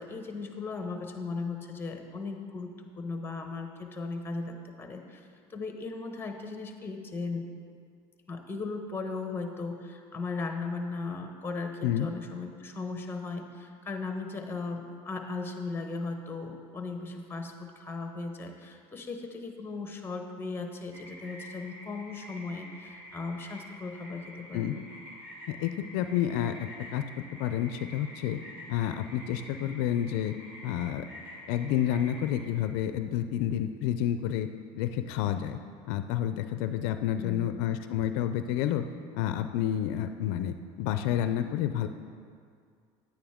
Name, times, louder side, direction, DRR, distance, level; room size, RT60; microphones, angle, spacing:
voice 1, 0.0-7.5 8.3-24.8 37.1-37.5, left 3 dB, 15° left, 5 dB, 1.0 m, -37 dB
sound 1, 20.9-32.5, left 1 dB, 15° right, 2.5 m, -48 dB
voice 2, 25.5-28.4 28.7-30.3 30.6-31.1 31.5-34.5 34.7-35.6 35.9-38.8 39.1-41.9, left 11 dB, 80° left, 9 dB, 0.4 m, -29 dB
9.5 x 9.0 x 3.6 m, 2.2 s
supercardioid pair, 115°, 13 cm